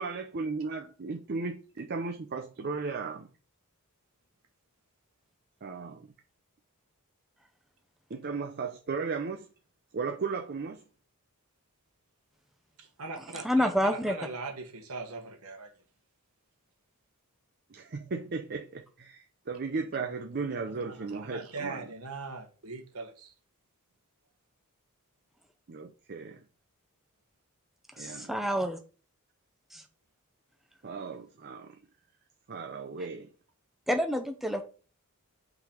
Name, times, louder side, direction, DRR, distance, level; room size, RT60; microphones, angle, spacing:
voice 1, 0.0-3.3 5.6-6.1 8.1-9.5 9.9-10.8 17.7-21.8 25.7-26.4 28.0-28.3 30.8-31.8 32.5-33.3, right 4 dB, 45° right, 0.6 m, -36 dB
voice 2, 12.8-15.7 20.7-23.3, right 3 dB, 75° right, 1.5 m, -41 dB
voice 3, 13.4-14.2 28.0-28.8 29.7-29.8 33.9-34.6, equal, ahead, 0.6 m, -28 dB
5.7 x 4.0 x 5.1 m
head